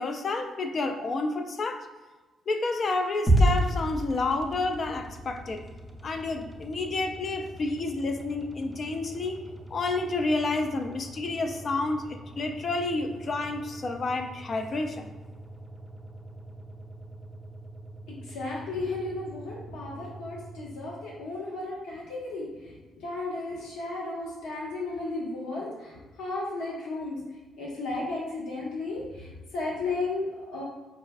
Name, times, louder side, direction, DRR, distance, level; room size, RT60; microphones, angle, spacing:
voice 1, 0.0-1.9 2.5-5.6 6.0-9.4 9.7-15.1, left 3 dB, 45° left, 5 dB, 0.3 m, -30 dB
sound 1, 3.3-21.5, right 1 dB, ahead, 0.6 m, -34 dB
voice 2, 18.1-22.7 23.0-27.2 27.6-30.6, left 2 dB, 90° left, -5 dB, 1.0 m, -34 dB
4.3 x 2.4 x 2.3 m, 1.2 s
cardioid pair, 90°, 0 cm